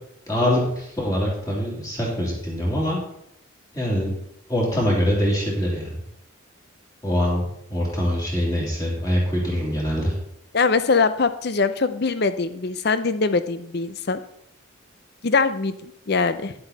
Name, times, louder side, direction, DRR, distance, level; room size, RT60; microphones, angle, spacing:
voice 1, 0.3-3.0 3.7-4.1 4.5-6.0 7.0-10.1, equal, 15° left, -3 dB, 2.8 m, -24 dB
voice 2, 10.5-14.2 15.2-16.5, left 4 dB, 50° left, 12 dB, 0.6 m, -22 dB
10.0 x 7.8 x 4.1 m, 0.74 s
head